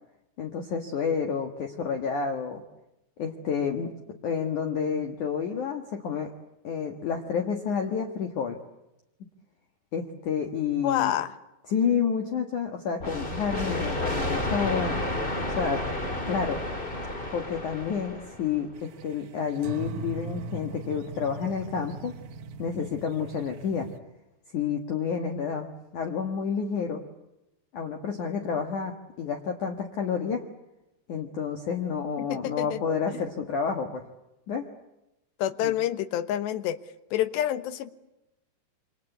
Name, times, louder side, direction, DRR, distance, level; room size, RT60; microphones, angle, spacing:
voice 1, 0.4-2.6 3.2-3.9 4.2-6.3 6.6-8.6 9.9-11.2 11.7-15.0 15.6-15.8 16.3-16.6 17.3-22.1 22.6-23.9 24.5-27.0 27.7-30.4 31.1-34.1 34.5-34.7 35.6-35.7, left 6 dB, 55° left, 4 dB, 2.6 m, -29 dB
voice 2, 10.8-11.3 32.2-32.8 33.1-33.2 35.4-36.8 37.1-37.9, left 11 dB, 75° left, 13 dB, 3.2 m, -28 dB
sound 1, 13.0-18.6, left 1 dB, 20° left, 1.6 m, -31 dB
sound 2, 18.8-24.0, right 3 dB, 65° right, 1.9 m, -40 dB
28.5 x 25.5 x 8.1 m, 0.93 s
omnidirectional pair, 5.2 m